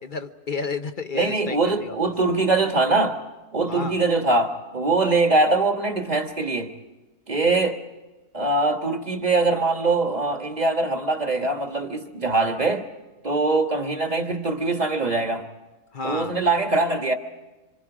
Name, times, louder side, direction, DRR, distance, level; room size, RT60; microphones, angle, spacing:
voice 1, 0.0-2.0 3.7-4.0 15.9-16.4, left 4 dB, 40° left, 0.9 m, -31 dB
voice 2, 1.1-3.2 3.5-6.7 7.3-7.8 8.3-12.9 13.2-15.5 16.0-17.2, right 3 dB, 30° right, 1.5 m, -22 dB
27.0 x 26.5 x 4.9 m
omnidirectional pair, 1.6 m